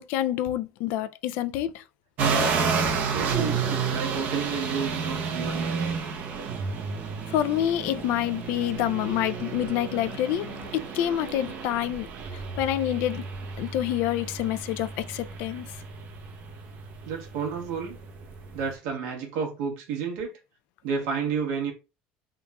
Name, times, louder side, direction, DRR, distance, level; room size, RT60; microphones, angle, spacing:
voice 1, 0.0-1.8 7.3-13.2 13.6-15.7, left 12 dB, 70° left, 0.4 m, -27 dB
sound 1, 2.2-18.7, right 5 dB, 50° right, 0.8 m, -31 dB
voice 2, 3.1-5.8 17.0-18.0 18.5-20.3 20.8-21.7, right 6 dB, 75° right, 1.4 m, -31 dB
3.6 x 2.4 x 4.0 m
cardioid pair, 145°, 4 cm